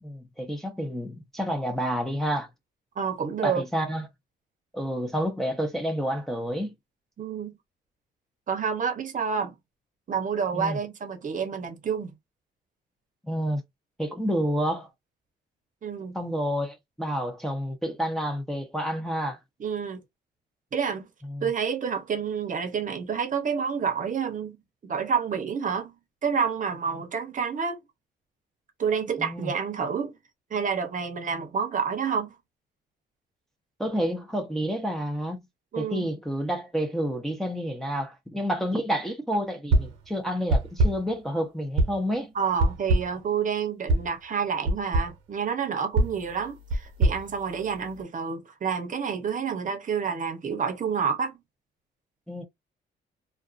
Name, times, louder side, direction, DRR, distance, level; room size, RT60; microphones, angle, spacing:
voice 1, 0.0-2.5 3.4-4.1 4.7-6.7 10.5-10.8 13.2-13.6 14.0-14.9 16.1-19.4 21.3-21.5 29.2-29.5 33.8-35.4 35.8-42.3 52.3-52.4, equal, ahead, 0.7 m, -29 dB
voice 2, 3.0-3.6 7.2-7.5 8.5-9.5 10.1-12.1 15.8-16.2 19.6-20.0 20.7-21.1 21.4-24.6 24.8-25.9 26.2-27.8 28.8-30.1 30.5-32.3 35.7-36.1 42.3-51.4, right 6 dB, 40° right, 0.8 m, -29 dB
sound 1, 39.7-40.1 40.5-41.1 41.8-42.1 42.6-43.2 43.9-44.1 44.6-45.2 45.9-48.0, right 2 dB, 90° right, 0.8 m, -25 dB
2.4 x 2.4 x 2.5 m
cardioid pair, 90°, 20 cm